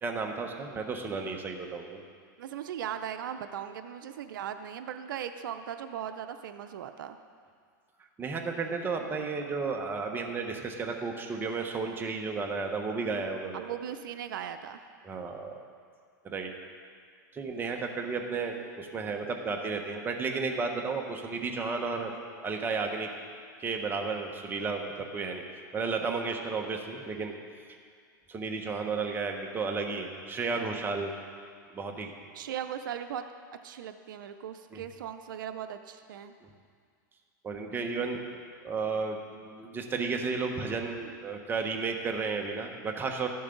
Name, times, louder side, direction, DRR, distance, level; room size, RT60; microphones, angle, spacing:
voice 1, 0.0-2.0 8.2-13.6 15.0-15.5 16.2-16.5 17.3-23.1 23.6-27.3 27.7-27.8 28.3-31.1 31.7-32.1 34.7-34.8 36.4-36.5 37.4-38.2 38.6-43.3, right 4 dB, 20° right, 3 dB, 1.2 m, -33 dB
voice 2, 2.4-7.2 13.5-14.8 32.3-33.2 33.6-36.3, right 9 dB, 85° right, 9 dB, 0.5 m, -38 dB
13.5 x 11.0 x 3.9 m, 2.1 s
supercardioid pair, 130°, 11 cm